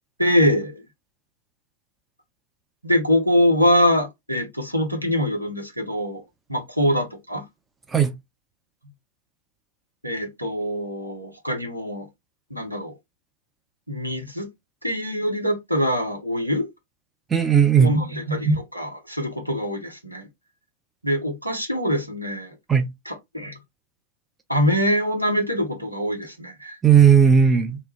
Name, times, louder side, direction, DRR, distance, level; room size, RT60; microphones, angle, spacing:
voice 1, 0.2-0.8 2.8-6.2 6.5-7.4 10.0-12.1 12.5-13.0 13.9-14.5 14.8-16.7 17.8-20.3 21.0-22.5 23.0-23.5 24.5-26.8, equal, 90° right, 0.8 m, -23 dB
voice 2, 17.3-17.9 22.7-22.9 26.8-27.8, right 7 dB, 15° right, 0.4 m, -15 dB
2.2 x 2.0 x 3.1 m
figure-of-eight pair, 95°, 0 cm